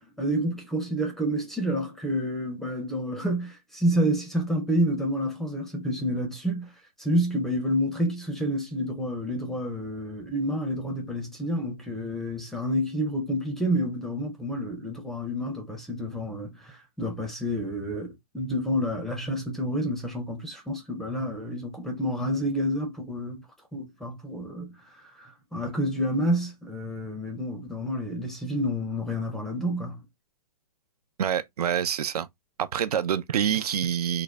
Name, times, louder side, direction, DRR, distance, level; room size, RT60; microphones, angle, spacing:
voice 1, 0.0-6.7 7.0-23.4 23.7-24.7 25.2-30.0, equal, ahead, 0.5 m, -29 dB
voice 2, 31.2-32.3 32.6-34.2, right 9 dB, 80° right, 0.5 m, -26 dB
3.8 x 2.1 x 3.2 m
hypercardioid pair, 155°, 20 cm